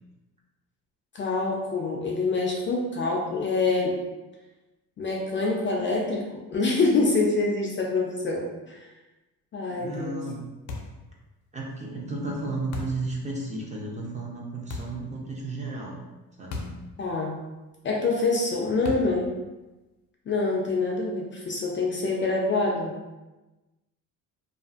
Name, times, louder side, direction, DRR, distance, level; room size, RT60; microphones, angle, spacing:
voice 1, 1.1-3.9 5.0-8.9 9.5-10.2 17.0-17.3 17.8-19.2 20.3-22.9, left 3 dB, 35° left, -1 dB, 0.4 m, -26 dB
voice 2, 9.7-10.4 11.5-16.0 16.4-16.8, right 2 dB, 20° right, -2 dB, 0.5 m, -33 dB
sound 1, 10.7-11.1 12.7-13.1 14.7-15.0 16.5-16.9 17.1-17.2 18.8-19.2, left 3 dB, 90° left, 0.5 m, -36 dB
2.5 x 2.5 x 2.4 m, 1.1 s
cardioid pair, 100°, 37 cm